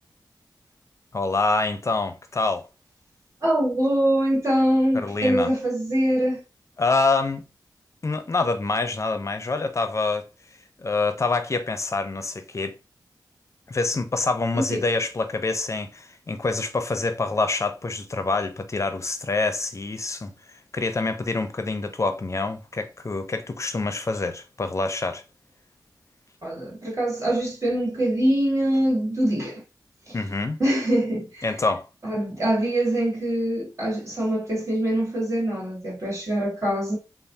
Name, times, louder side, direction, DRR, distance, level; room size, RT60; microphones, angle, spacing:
voice 1, 1.1-2.7 4.9-5.5 6.8-7.4 8.0-10.3 10.8-12.8 13.7-20.3 20.7-25.2 30.1-30.6 31.4-31.9, left 3 dB, 40° left, 0.5 m, -26 dB
voice 2, 3.4-6.4 14.5-14.8 26.4-29.6 30.1-30.2 30.6-31.4 32.0-37.0, right 1 dB, 40° right, 1.7 m, -24 dB
3.0 x 2.0 x 2.7 m
cardioid pair, 50°, 8 cm